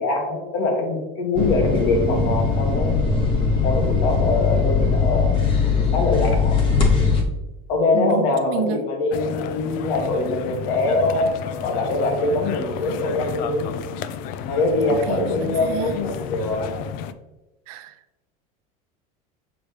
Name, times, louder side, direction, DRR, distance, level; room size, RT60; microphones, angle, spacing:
voice 1, 0.0-3.0 3.6-5.3 5.6-6.6 7.7-11.3 11.6-13.7 14.5-16.6, left 2 dB, 65° left, 2 dB, 1.8 m, -23 dB
sound 1, 1.3-7.2, left 4 dB, 30° left, 0.9 m, -20 dB
voice 2, 7.9-8.9 14.9-15.9 17.7-18.0, right 6 dB, 70° right, 7 dB, 0.7 m, -30 dB
sound 2, 9.1-17.1, left 8 dB, 50° left, 0.4 m, -31 dB
6.9 x 5.1 x 3.2 m, 1.1 s
cardioid pair, 155°, 18 cm